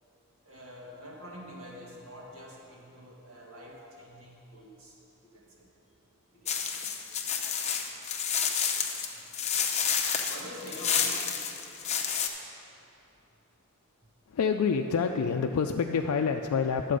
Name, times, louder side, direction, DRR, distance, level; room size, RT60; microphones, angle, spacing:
voice 1, 0.4-5.0 5.2-5.7 6.3-6.6 10.3-11.3, equal, 65° right, -4 dB, 2.1 m, -46 dB
sound 1, 6.5-12.3, left 7 dB, 30° left, 0.7 m, -30 dB
voice 2, 14.3-17.0, left 6 dB, 85° left, 4 dB, 0.4 m, -27 dB
11.5 x 7.5 x 5.1 m, 3.0 s
head